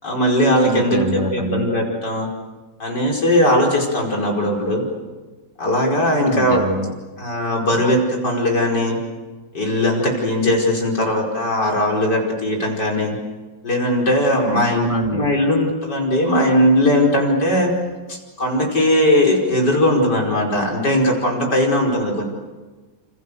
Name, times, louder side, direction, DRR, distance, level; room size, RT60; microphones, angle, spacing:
voice 1, 0.0-2.3 2.8-4.8 5.6-6.6 7.2-9.0 9.5-13.2 13.6-17.7 18.1-22.2, left 1 dB, 70° left, 0 dB, 5.8 m, -19 dB
voice 2, 0.7-1.7 6.3-6.9 14.7-15.3, right 1 dB, 20° right, 2 dB, 2.2 m, -24 dB
29.0 x 28.5 x 7.0 m, 1.3 s
omnidirectional pair, 1.9 m